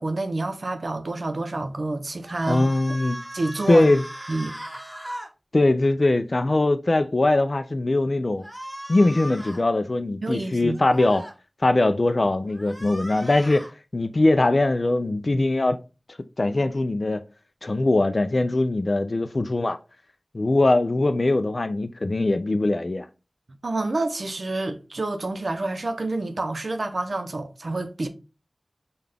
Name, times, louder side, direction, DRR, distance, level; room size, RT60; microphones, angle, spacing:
voice 1, 0.0-2.7 3.3-3.9 4.3-4.5 10.2-10.8 23.6-28.1, right 2 dB, 75° right, 0.6 m, -28 dB
sound 1, 2.2-5.3 8.4-9.6 10.7-11.3 12.5-13.7, equal, 10° right, 0.9 m, -38 dB
voice 2, 2.5-3.2 3.7-4.0 5.5-8.4 8.9-11.2 11.6-13.7 13.9-15.8 16.4-17.2 17.6-19.8 20.3-23.1, left 2 dB, 55° left, 0.4 m, -21 dB
5.5 x 2.3 x 3.4 m
wide cardioid pair, 60°, 0 cm